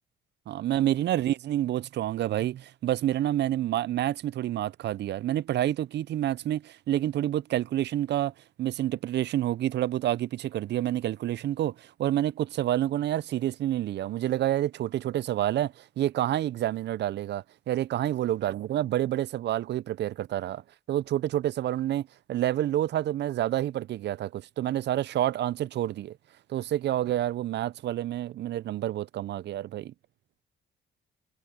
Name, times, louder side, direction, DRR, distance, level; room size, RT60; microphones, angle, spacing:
voice 1, 0.5-8.3 8.6-20.6 20.9-26.2 26.5-29.9, right 12 dB, 60° right, 0.5 m, -28 dB
cardioid pair, 90°, 20 cm